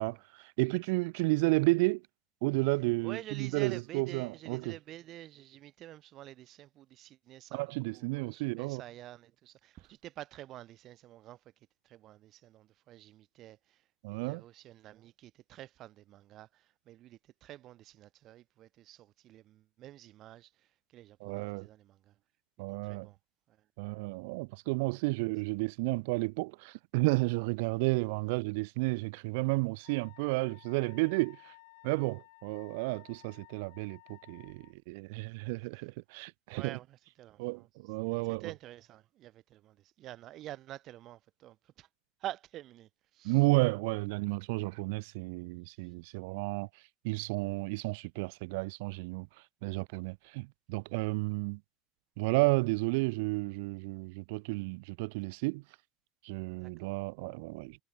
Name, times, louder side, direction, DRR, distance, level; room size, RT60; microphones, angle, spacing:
voice 1, 0.0-2.0 2.4-4.8 7.5-8.8 14.0-14.4 21.2-21.7 22.6-23.1 23.8-31.5 31.8-36.8 37.4-38.5 43.2-46.7 47.0-49.3 49.6-51.6 52.2-55.6 56.2-57.8, right 27 dB, 70° right, 0.7 m, -32 dB
voice 2, 3.0-11.4 11.8-13.8 14.1-20.5 20.9-22.1 22.8-23.2 23.5-23.6 35.7-35.8 36.5-37.7 38.3-41.9 42.2-43.4 56.6-56.9, right 14 dB, 35° right, 0.5 m, -48 dB
Wind instrument woodwind instrument, 29.8-34.7, left 22 dB, 85° left, 4.7 m, -57 dB
cardioid pair, 170°, 0 cm